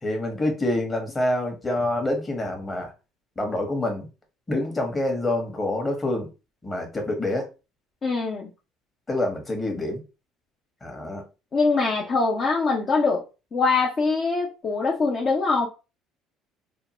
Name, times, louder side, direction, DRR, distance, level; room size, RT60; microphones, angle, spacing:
voice 1, 0.0-2.9 3.4-4.1 4.5-6.3 6.6-7.5 9.1-10.0 10.8-11.2, left 1 dB, 25° left, 3 dB, 1.1 m, -26 dB
voice 2, 8.0-8.5 11.5-13.2 13.5-15.7, left 4 dB, 40° left, -2 dB, 0.6 m, -23 dB
2.7 x 2.2 x 2.8 m, 0.30 s
hypercardioid pair, 70°, 0 cm